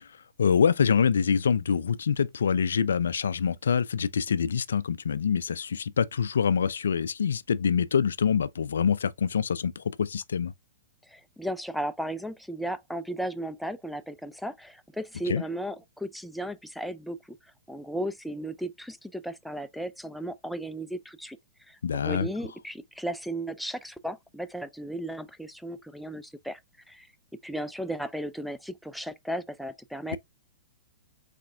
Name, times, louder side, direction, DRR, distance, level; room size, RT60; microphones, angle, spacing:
voice 1, 0.4-10.5 15.3-15.4 21.8-22.3 30.1-30.2, left 7 dB, 75° left, 0.3 m, -25 dB
voice 2, 11.1-17.4 17.7-21.4 21.7-26.6 26.9-27.1 27.4-30.2, right 1 dB, ahead, 0.4 m, -35 dB
4.7 x 4.2 x 2.2 m
hypercardioid pair, 110°, 0 cm